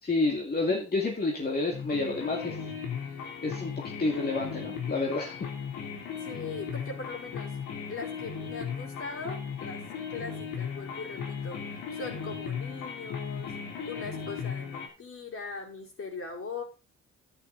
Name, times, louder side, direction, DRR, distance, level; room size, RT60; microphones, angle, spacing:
voice 1, 0.0-2.5 3.4-5.4, left 3 dB, 30° left, 0 dB, 2.4 m, -29 dB
sound 1, 1.7-14.9, left 6 dB, 90° left, 3.3 m, -37 dB
voice 2, 6.2-7.5 7.9-9.8 10.1-13.5 13.8-16.6, left 4 dB, 45° left, -1 dB, 4.9 m, -40 dB
10.5 x 9.8 x 4.1 m, 0.31 s
cardioid pair, 90°, 30 cm